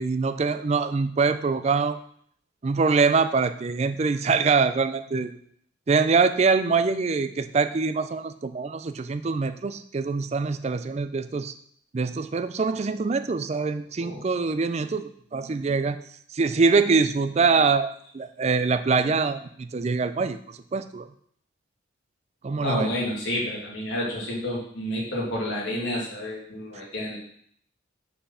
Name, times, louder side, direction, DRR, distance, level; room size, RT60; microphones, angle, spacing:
voice 1, 0.0-2.0 2.6-5.3 5.9-11.5 11.9-16.0 16.3-21.1 22.4-22.9, right 4 dB, 35° right, 11 dB, 0.4 m, -24 dB
voice 2, 22.6-27.2, left 1 dB, 65° left, -4 dB, 2.4 m, -30 dB
5.5 x 4.4 x 5.6 m, 0.63 s
head